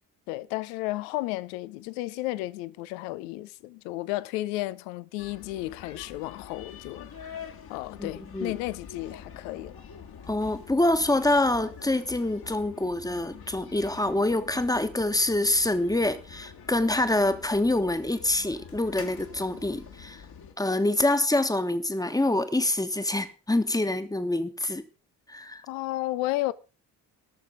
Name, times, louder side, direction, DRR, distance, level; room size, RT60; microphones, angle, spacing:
voice 1, 0.3-9.8 25.7-26.5, left 17 dB, 75° left, 0.7 m, -33 dB
sound 1, 5.2-20.5, left 7 dB, 50° left, 1.9 m, -46 dB
voice 2, 8.0-8.5 10.3-20.2 20.6-24.8 25.3-25.6, left 1 dB, 10° left, 1.3 m, -26 dB
18.0 x 6.6 x 5.0 m
figure-of-eight pair, 40°, 48 cm